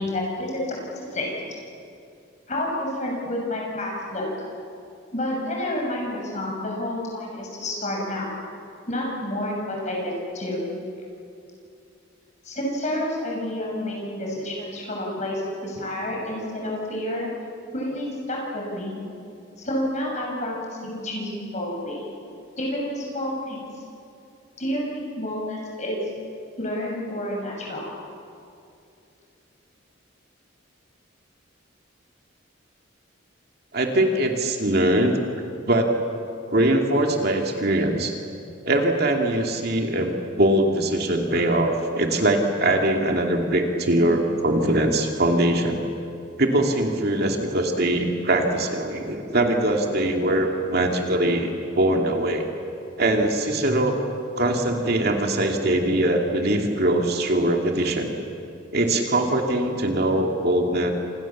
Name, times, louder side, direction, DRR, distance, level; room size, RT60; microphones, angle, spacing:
voice 1, 0.0-1.4 2.5-4.5 5.1-8.3 8.9-10.7 12.4-17.3 17.7-18.9 19.6-22.1 22.6-23.8 24.6-26.0 26.6-27.9, left 1 dB, 35° left, -1 dB, 6.9 m, -29 dB
voice 2, 33.7-35.2 35.7-35.9 36.5-38.2 38.6-40.1 40.4-45.8 46.4-52.5 53.0-54.0 54.4-58.1 58.7-60.9, right 1 dB, 50° right, 2 dB, 2.6 m, -22 dB
30.0 x 27.0 x 7.3 m, 2.6 s
head